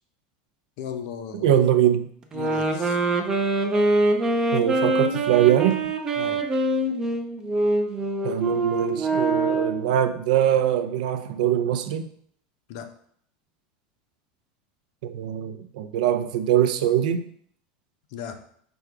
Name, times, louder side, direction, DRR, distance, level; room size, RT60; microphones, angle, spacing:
voice 1, 0.8-1.6 2.3-3.0 6.2-6.4 12.7-12.9 18.1-18.4, left 8 dB, 55° left, 7 dB, 0.6 m, -36 dB
voice 2, 1.4-2.1 4.5-5.9 8.2-12.1 15.0-17.3, right 10 dB, 75° right, 8 dB, 0.4 m, -22 dB
sound 1, 2.3-9.9, right 2 dB, 15° right, 0.4 m, -24 dB
5.0 x 2.3 x 4.6 m, 0.63 s
supercardioid pair, 165°, 4 cm